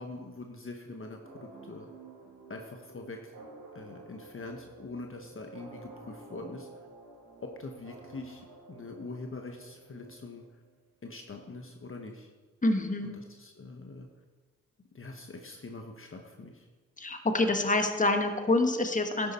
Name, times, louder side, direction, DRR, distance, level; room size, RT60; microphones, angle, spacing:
voice 1, 0.0-1.9 2.5-3.3 3.7-6.7 7.4-10.4 11.0-12.3 13.0-14.1 14.9-16.7, left 3 dB, 40° left, 3 dB, 1.2 m, -43 dB
sound 1, 1.2-10.7, right 3 dB, 85° right, 2.2 m, -51 dB
voice 2, 12.6-13.1 17.0-19.3, left 2 dB, 25° left, 5 dB, 1.4 m, -26 dB
11.5 x 8.5 x 4.3 m, 1.3 s
cardioid pair, 55°, 32 cm